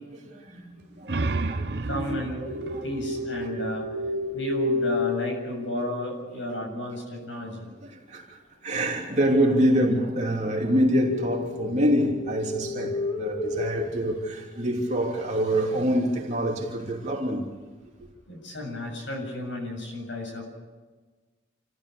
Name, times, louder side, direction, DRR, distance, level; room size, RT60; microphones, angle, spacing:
voice 1, 0.2-2.8 7.8-17.5 18.0-18.1, equal, 35° right, 3.1 m, -26 dB
sound 1, 0.8-4.2, right 3 dB, 55° right, 0.7 m, -32 dB
voice 2, 1.9-2.4 2.8-3.8 4.3-7.7 18.3-20.4, left 1 dB, 75° left, 7.4 m, -32 dB
sound 2, 2.4-6.2 10.6-15.0, left 2 dB, 20° left, 5.6 m, -32 dB
28.0 x 15.0 x 7.0 m
head